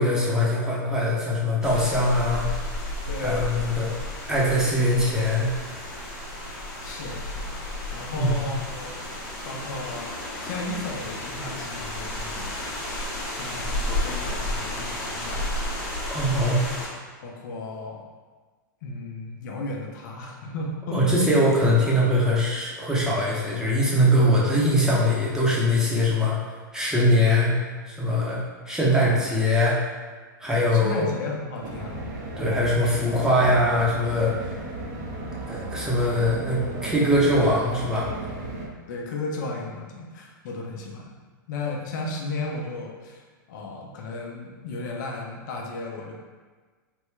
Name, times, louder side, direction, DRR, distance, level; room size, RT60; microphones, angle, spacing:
voice 1, 0.0-2.5 3.2-3.9 4.3-5.5 8.2-8.5 16.1-16.6 20.9-26.4 26.7-27.5 27.9-28.4 28.7-29.8 30.4-31.0 32.4-34.5 35.5-38.1, left 1 dB, 5° right, -7 dB, 0.7 m, -22 dB
sound 1, 1.6-16.9, left 1 dB, 25° left, 1.0 m, -32 dB
voice 2, 3.1-4.0 6.8-7.5 7.9-9.0 9.4-12.8 13.3-15.6 16.3-16.6 17.2-18.0 18.8-21.3 28.9-29.2 30.7-32.0 38.9-41.1 41.5-46.2, left 3 dB, 60° left, 0 dB, 0.7 m, -34 dB
sound 2, 31.6-38.7, right 2 dB, 45° right, 0.6 m, -34 dB
3.4 x 2.2 x 3.1 m, 1.4 s
hypercardioid pair, 120°, 11 cm